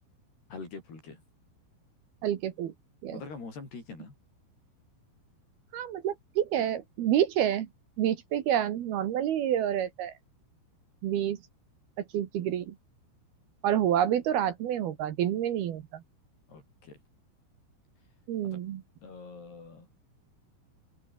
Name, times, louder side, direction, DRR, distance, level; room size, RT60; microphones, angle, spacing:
voice 1, 0.5-1.2 3.1-4.1 16.5-17.0 18.4-18.6 19.0-19.9, left 4 dB, 50° left, 10.0 m, -44 dB
voice 2, 2.2-2.7 3.0-3.2 5.7-7.7 8.0-10.1 11.0-11.4 12.1-12.7 13.6-16.0 18.3-18.8, right 10 dB, 65° right, 2.8 m, -28 dB
open air
omnidirectional pair, 5.9 m